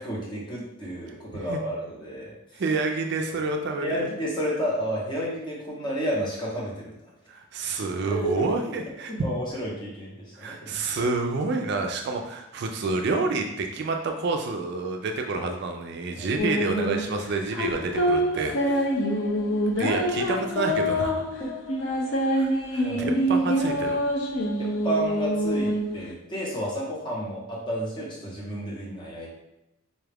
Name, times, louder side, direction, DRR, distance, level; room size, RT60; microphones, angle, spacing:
voice 1, 0.0-2.3 3.8-6.9 8.1-8.5 9.1-10.8 16.2-16.3 18.3-18.4 22.8-23.2 24.6-29.3, right 1 dB, 20° left, -4 dB, 0.9 m, -31 dB
voice 2, 2.5-4.1 7.3-9.1 10.3-18.9 19.8-21.2 22.4-24.0, right 3 dB, 50° right, 4 dB, 0.3 m, -29 dB
sound 1, 16.4-26.1, equal, 60° left, 0.5 m, -26 dB
4.1 x 2.3 x 3.3 m, 0.85 s
head